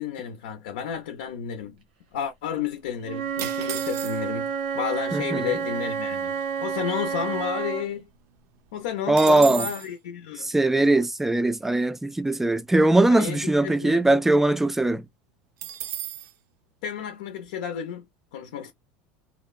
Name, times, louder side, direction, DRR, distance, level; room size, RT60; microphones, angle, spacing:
voice 1, 0.0-1.8 2.1-4.5 4.7-8.1 8.7-10.5 13.1-14.0 16.8-18.0 18.3-18.7, left 9 dB, 85° left, 0.6 m, -32 dB
Wind instrument woodwind instrument, 3.0-7.9, right 7 dB, 90° right, 1.0 m, -29 dB
sound 1, 3.4-4.5 5.3-5.4 5.6-5.9 6.3-7.8 8.1-8.2 8.5-9.9 15.6-16.3, right 12 dB, 60° right, 0.5 m, -36 dB
voice 2, 5.1-5.6 9.1-9.7 10.4-15.0, right 2 dB, 5° right, 0.3 m, -21 dB
2.9 x 2.1 x 2.3 m
supercardioid pair, 105°, 5 cm